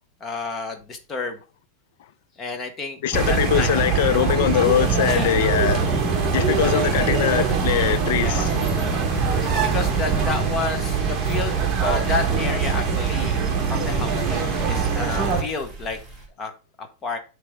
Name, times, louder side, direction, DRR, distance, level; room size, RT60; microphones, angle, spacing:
voice 1, 0.2-1.4 2.4-3.0 3.3-3.7 5.1-5.4 8.2-8.5 9.3-13.4 13.7-16.0 16.4-16.5 16.8-17.2, left 3 dB, 15° left, 1.0 m, -30 dB
voice 2, 3.0-6.0 6.3-8.5, left 11 dB, 55° left, 0.5 m, -22 dB
sound 1, 3.1-15.4, right 5 dB, 15° right, 1.4 m, -23 dB
sound 2, 6.9-16.3, right 2 dB, ahead, 2.3 m, -37 dB
8.2 x 3.4 x 5.0 m
supercardioid pair, 170°, 0 cm